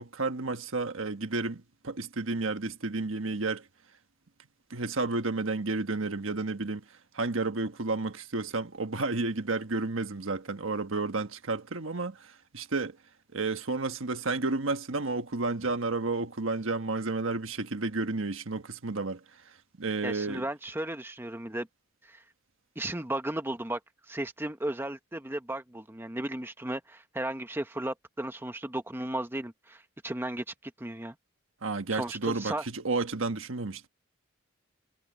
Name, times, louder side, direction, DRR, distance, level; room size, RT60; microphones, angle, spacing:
voice 1, 0.0-3.6 4.7-6.8 7.1-13.0 13.3-19.2 19.8-20.5 31.6-33.9, right 3 dB, 70° right, 1.4 m, -31 dB
voice 2, 20.0-21.7 22.0-22.2 22.8-23.8 24.1-31.1 31.9-32.6, right 1 dB, 10° right, 0.9 m, -35 dB
head